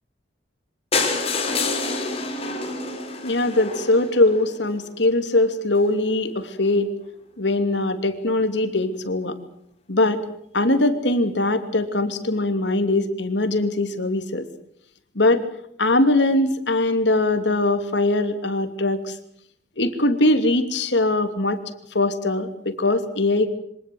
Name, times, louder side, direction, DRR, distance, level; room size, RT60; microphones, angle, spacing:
sound 1, 0.9-4.8 5.4-5.5 5.8-5.9 6.2-6.3 6.4-6.5, left 3 dB, 35° left, 4.7 m, -27 dB
voice 1, 3.2-6.9 7.4-9.4 9.9-10.2 10.5-14.5 15.1-15.4 15.8-19.2 19.8-21.6 21.9-23.5, left 2 dB, 70° left, 9 dB, 2.8 m, -21 dB
25.0 x 19.0 x 7.9 m, 0.71 s
head